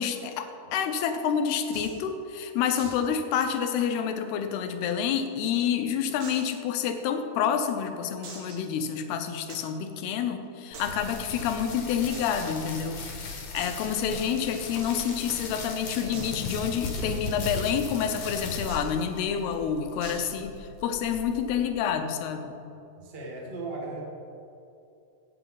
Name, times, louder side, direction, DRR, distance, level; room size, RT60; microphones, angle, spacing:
voice 1, 0.0-22.6, left 7 dB, 80° left, 7 dB, 2.7 m, -28 dB
sound 1, 1.7-2.0 2.8-3.1 3.3-3.4 3.8-3.9 4.6-5.3 6.2-6.6 7.1-7.2 8.2-8.7 9.5-9.7 10.7-11.2 12.1-12.2 12.5-12.6 12.9-13.0 13.6-13.8 14.8-15.2 16.1-17.2 18.7-19.0 20.0-20.4, right 3 dB, 60° right, 3.4 m, -43 dB
sound 2, 10.7-21.7, left 3 dB, 60° left, 2.7 m, -38 dB
voice 2, 13.8-14.2 15.5-15.6 20.1-20.4 23.0-24.0, right 3 dB, 40° right, -2 dB, 0.7 m, -39 dB
16.0 x 8.5 x 4.0 m, 2.6 s
omnidirectional pair, 4.8 m